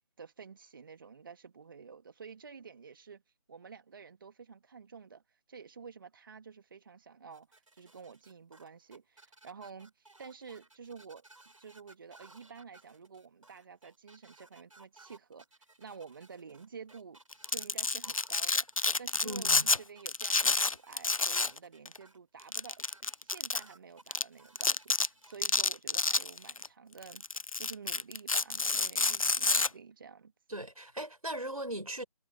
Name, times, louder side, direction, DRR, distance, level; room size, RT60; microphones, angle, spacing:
voice 1, 0.2-3.2 3.5-11.3 11.6-15.5 15.8-17.2 17.5-18.7 19.0-27.2 27.6-30.3, right 6 dB, 35° right, 2.1 m, -50 dB
sound 1, 7.3-25.4, right 2 dB, 65° right, 7.2 m, -59 dB
Domestic sounds home sounds, 17.3-19.8 20.1-21.6 21.8-22.0 22.5-23.6 24.1-24.2 24.6-25.1 25.4-26.7 27.0-29.7, left 3 dB, 70° left, 0.8 m, -29 dB
voice 2, 19.2-19.7 30.5-32.0, right 1 dB, 85° right, 4.8 m, -38 dB
figure-of-eight pair, 155°, 18 cm